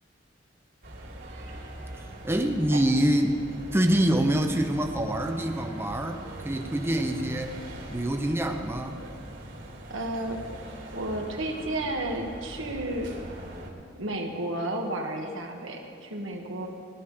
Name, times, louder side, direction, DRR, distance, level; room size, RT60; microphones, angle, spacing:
sound 1, 0.8-13.7, right 1 dB, 65° right, 3.0 m, -42 dB
voice 1, 1.9-3.3 3.7-7.6 7.9-9.0, right 1 dB, 10° right, 4 dB, 0.7 m, -26 dB
voice 2, 9.9-10.4 10.9-13.1 14.0-16.7, right 1 dB, 90° right, 2 dB, 1.7 m, -32 dB
16.0 x 11.0 x 5.0 m, 2.7 s
head